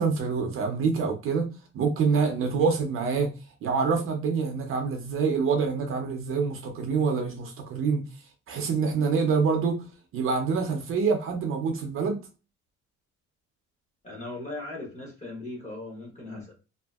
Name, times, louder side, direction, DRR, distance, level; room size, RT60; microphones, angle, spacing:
voice 1, 0.0-1.5 1.7-3.3 3.6-8.0 8.5-9.8 10.1-12.2, right 5 dB, 45° right, 0.5 m, -26 dB
voice 2, 14.0-16.5, left 2 dB, 25° left, 1.0 m, -38 dB
2.7 x 2.4 x 2.3 m
cardioid pair, 180°, 29 cm